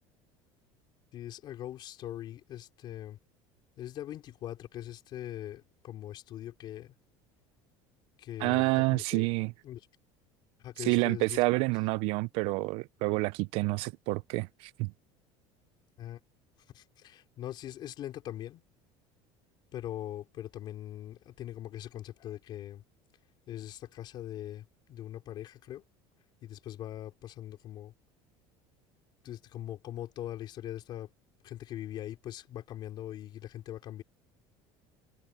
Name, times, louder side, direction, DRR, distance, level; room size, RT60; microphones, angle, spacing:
voice 1, 1.1-3.2 3.8-6.9 8.2-9.3 9.6-9.9 10.6-11.4 16.0-16.2 16.7-18.6 19.7-22.8 23.5-25.8 26.4-27.9 29.2-31.1 31.4-34.0, left 12 dB, 40° left, 3.8 m, -41 dB
voice 2, 8.4-9.5 10.8-14.9, right 24 dB, 60° right, 0.4 m, -28 dB
cardioid pair, 155°, 11 cm